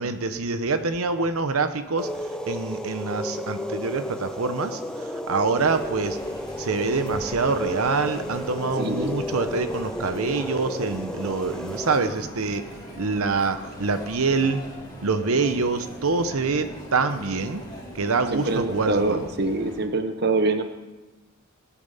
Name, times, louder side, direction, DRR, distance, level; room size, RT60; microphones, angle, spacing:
voice 1, 0.0-6.2 6.6-12.6 13.0-14.6 15.0-17.6 17.9-19.3, right 4 dB, 80° right, 10 dB, 0.9 m, -25 dB
sound 1, 2.0-12.0, left 1 dB, 5° left, 0.7 m, -33 dB
Chatter, 5.5-19.8, equal, 20° left, 4.2 m, -40 dB
voice 2, 8.8-9.2 18.3-20.6, right 2 dB, 50° right, 8 dB, 0.9 m, -25 dB
20.0 x 8.6 x 5.6 m, 1.1 s
head